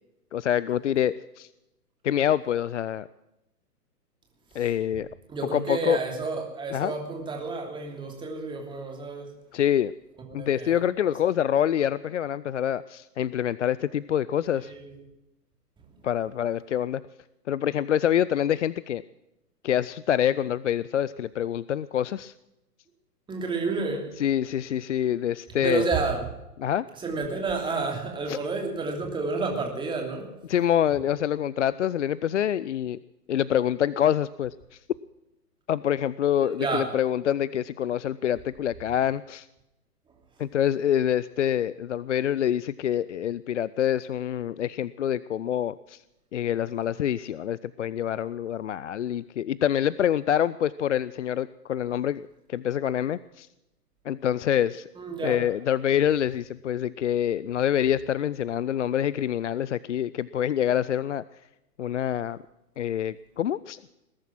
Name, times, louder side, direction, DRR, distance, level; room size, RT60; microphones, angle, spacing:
voice 1, 0.3-1.5 2.0-3.1 4.5-5.1 5.5-6.0 6.7-6.9 9.5-9.9 10.3-14.7 16.0-17.0 17.5-19.0 19.6-22.3 24.2-25.9 26.6-26.9 28.3-28.4 30.5-33.0 33.3-34.8 35.7-39.5 40.4-46.0 46.3-52.2 52.5-53.5 54.1-54.9 55.2-61.2 61.8-62.4 62.8-63.8, left 10 dB, 50° left, 19 dB, 0.5 m, -26 dB
voice 2, 5.3-9.3 10.3-10.8 11.1-11.2 14.6-14.9 23.3-24.1 25.6-26.3 27.0-30.3 36.3-36.9 54.9-55.4, right 4 dB, 10° right, 2 dB, 2.9 m, -30 dB
20.5 x 11.0 x 6.1 m, 0.90 s
figure-of-eight pair, 125°, 48 cm